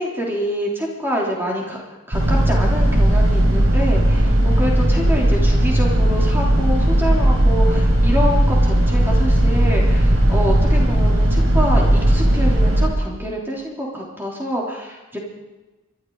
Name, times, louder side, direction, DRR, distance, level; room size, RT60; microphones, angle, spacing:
voice 1, 0.0-1.8 2.1-15.2, equal, 10° right, -3 dB, 3.4 m, -26 dB
sound 1, 2.1-12.9, right 1 dB, 75° right, 4.2 m, -16 dB
25.5 x 12.5 x 4.0 m, 1.1 s
head